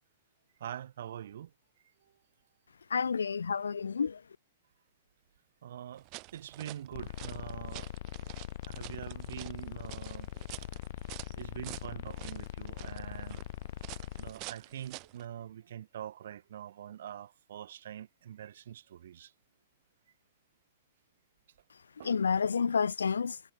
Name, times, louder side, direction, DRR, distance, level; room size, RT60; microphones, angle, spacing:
voice 1, 0.6-1.5 5.6-6.0 6.3-7.9 8.7-10.3 11.4-13.4 14.2-19.3 22.0-22.1, right 10 dB, 65° right, 2.3 m, -44 dB
voice 2, 2.9-4.2 22.0-23.4, left 6 dB, 80° left, 1.1 m, -29 dB
sound 1, 5.9-15.2, right 28 dB, 40° right, 5.9 m, -49 dB
sound 2, 6.9-14.3, left 14 dB, 60° left, 2.4 m, -42 dB
hypercardioid pair, 110°, 0 cm